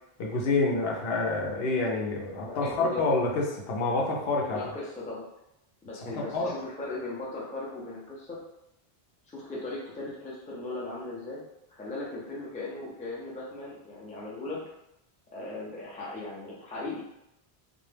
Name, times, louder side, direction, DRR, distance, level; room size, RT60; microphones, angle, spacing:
voice 1, 0.2-4.6 6.0-6.5, left 3 dB, 75° left, -2 dB, 0.8 m, -28 dB
voice 2, 2.4-3.1 4.5-5.3 5.8-8.4 9.3-11.4 11.7-14.6 15.3-17.0, left 2 dB, 15° left, -5 dB, 0.3 m, -38 dB
2.2 x 2.0 x 3.2 m, 0.86 s
omnidirectional pair, 1.1 m